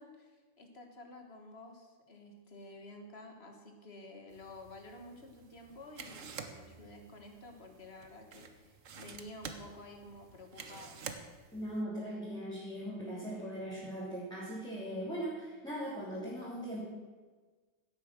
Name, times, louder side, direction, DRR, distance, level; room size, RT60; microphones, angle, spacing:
voice 1, 0.0-11.0, left 2 dB, 55° left, 3 dB, 2.0 m, -51 dB
sound 1, 4.3-11.8, right 6 dB, 90° right, 1.4 m, -50 dB
voice 2, 11.5-16.8, equal, 5° left, -9 dB, 3.2 m, -39 dB
16.0 x 8.3 x 6.2 m, 1.4 s
omnidirectional pair, 1.3 m